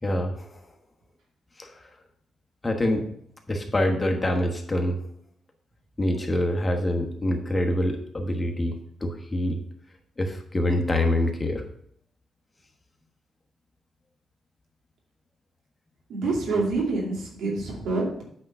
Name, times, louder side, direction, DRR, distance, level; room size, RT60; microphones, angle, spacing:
voice 1, 0.0-0.6 1.6-1.9 2.6-3.0 3.5-5.0 6.0-9.6 10.2-11.6, left 1 dB, 20° left, 3 dB, 1.2 m, -25 dB
voice 2, 16.1-18.2, right 3 dB, 80° right, -3 dB, 2.4 m, -27 dB
8.6 x 3.7 x 5.5 m, 0.67 s
cardioid pair, 90°, 0 cm